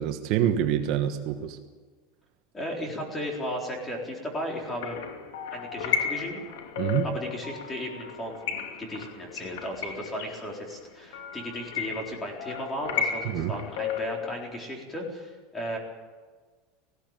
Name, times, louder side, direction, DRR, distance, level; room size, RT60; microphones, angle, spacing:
voice 1, 0.0-1.6 6.8-7.1 13.2-13.5, right 10 dB, 45° right, 6 dB, 1.3 m, -26 dB
voice 2, 2.5-5.0 5.5-6.4 7.0-15.8, equal, 10° left, 0 dB, 4.1 m, -35 dB
sound 1, 4.6-14.3, left 7 dB, 85° left, 2.6 m, -34 dB
19.0 x 16.5 x 9.1 m, 1.4 s
supercardioid pair, 165°, 0 cm